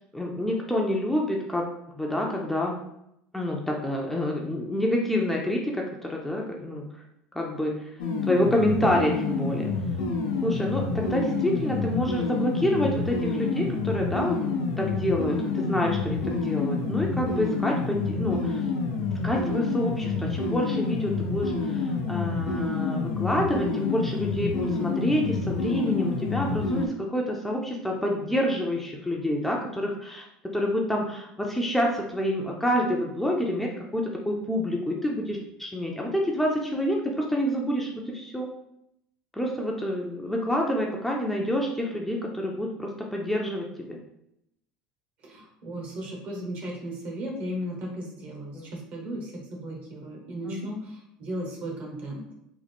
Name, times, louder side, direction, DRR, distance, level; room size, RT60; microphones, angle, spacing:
voice 1, 0.1-1.6 1.9-2.8 3.3-6.9 7.3-7.9 8.2-9.7 10.4-18.6 19.2-30.3 30.5-38.5 39.3-44.0 48.5-48.8 50.4-50.7, left 1 dB, 5° left, -1 dB, 0.6 m, -28 dB
sound 1, 8.0-26.9, left 4 dB, 85° left, 0.6 m, -28 dB
voice 2, 45.2-52.2, equal, 55° right, 0 dB, 1.3 m, -36 dB
3.7 x 2.0 x 3.5 m, 0.77 s
supercardioid pair, 90°, 3 cm